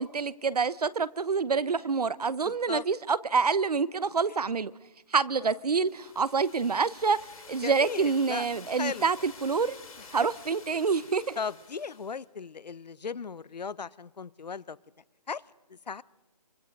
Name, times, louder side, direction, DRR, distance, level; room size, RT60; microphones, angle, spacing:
voice 1, 0.0-4.7 5.1-7.2 7.5-9.8 10.1-11.4, right 5 dB, 70° right, 0.9 m, -27 dB
voice 2, 2.4-2.8 7.6-9.1 10.0-10.1 11.4-14.8 15.3-15.4 15.7-16.0, left 5 dB, 85° left, 0.8 m, -37 dB
sound 1, 5.7-12.2, left 4 dB, 60° left, 3.1 m, -50 dB
24.5 x 23.5 x 5.3 m
hypercardioid pair, 180°, 21 cm